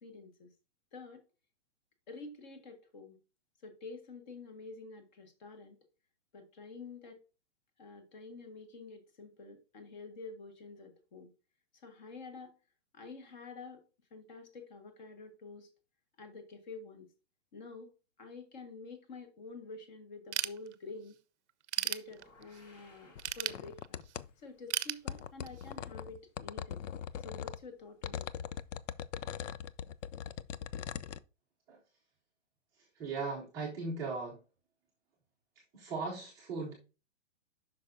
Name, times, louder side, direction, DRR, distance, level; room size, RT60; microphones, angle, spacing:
voice 1, 0.0-0.5 0.9-1.2 2.1-3.2 3.6-5.8 6.3-7.2 7.8-11.3 11.7-12.5 12.9-13.8 14.1-15.7 16.2-17.1 17.5-17.9 18.2-21.2 21.8-24.1 24.4-26.8 27.2-28.3, left 3 dB, 35° left, 1.5 m, -48 dB
Ratchet pawl / Tools, 20.3-21.1 21.5-22.6 23.2-24.2 24.7-25.7, right 11 dB, 65° right, 0.6 m, -36 dB
sound 1, 22.0-24.2, left 2 dB, 10° left, 3.4 m, -62 dB
sound 2, 23.2-24.3 25.1-27.6 28.0-31.2, left 9 dB, 75° left, 0.6 m, -41 dB
voice 2, 32.7-34.4 35.7-36.7, right 4 dB, 10° right, 0.6 m, -38 dB
8.3 x 5.9 x 2.6 m
hypercardioid pair, 170°, 37 cm